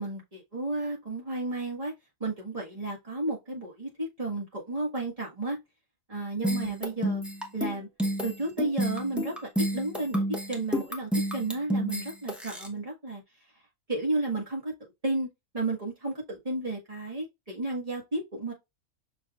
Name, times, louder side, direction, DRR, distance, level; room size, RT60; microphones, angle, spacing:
voice 1, 0.0-1.9 2.2-5.6 6.1-7.2 7.5-7.9 8.2-9.3 9.7-10.2 10.5-13.2 13.9-14.7 15.0-15.3 15.5-18.5, right 2 dB, 25° right, 1.7 m, -32 dB
sound 1, 6.4-12.7, equal, ahead, 0.7 m, -30 dB
5.9 x 3.6 x 2.4 m
omnidirectional pair, 1.4 m